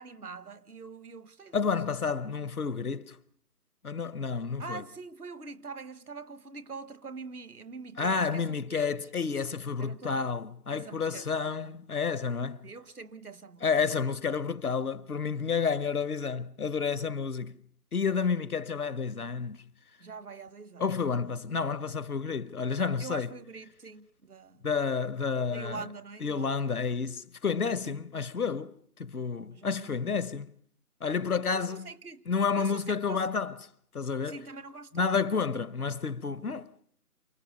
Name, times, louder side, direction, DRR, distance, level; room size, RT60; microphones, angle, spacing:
voice 1, 0.0-1.7 4.6-8.9 9.8-10.3 10.7-11.7 12.6-13.6 20.0-20.8 23.0-24.6 25.5-26.5 27.8-28.0 29.5-30.2 31.5-32.3 32.5-33.2 34.3-35.2 36.4-36.6, right 4 dB, 70° right, 1.3 m, -44 dB
voice 2, 1.5-3.2 3.8-4.8 8.0-12.7 13.6-17.6 17.9-19.6 20.8-23.3 24.6-25.9 26.2-28.7 29.0-30.5 31.0-31.9 32.3-33.6 33.9-34.4 34.9-36.7, left 5 dB, 70° left, 0.9 m, -30 dB
28.5 x 21.0 x 5.4 m
figure-of-eight pair, 170°, 46 cm